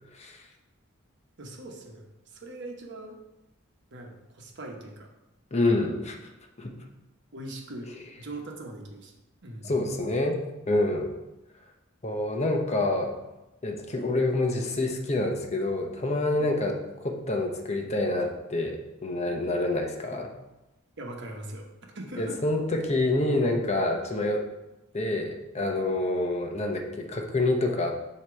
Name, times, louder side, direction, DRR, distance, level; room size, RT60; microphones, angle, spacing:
voice 1, 1.4-3.2 3.9-5.1 7.3-7.9 8.2-9.1 9.4-9.7 16.3-16.5 21.0-22.4, right 1 dB, 60° right, 2 dB, 1.1 m, -41 dB
voice 2, 5.5-6.2 6.6-6.8 9.6-11.1 12.0-13.2 13.6-20.3 22.2-24.5 24.9-27.9, left 2 dB, 35° left, 3 dB, 0.8 m, -27 dB
7.8 x 3.0 x 6.1 m, 0.98 s
head